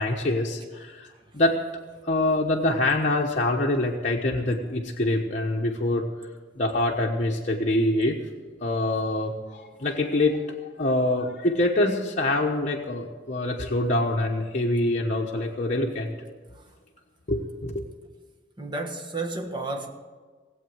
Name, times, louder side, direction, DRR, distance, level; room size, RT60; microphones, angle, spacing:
voice 1, 0.0-1.6 2.0-6.0 6.6-8.2 8.6-16.1 17.3-17.8, left 1 dB, 45° left, 1.1 m, -25 dB
voice 2, 1.1-1.4 16.5-16.8 18.6-19.9, right 2 dB, 25° right, 1.5 m, -33 dB
18.5 x 8.1 x 7.7 m
head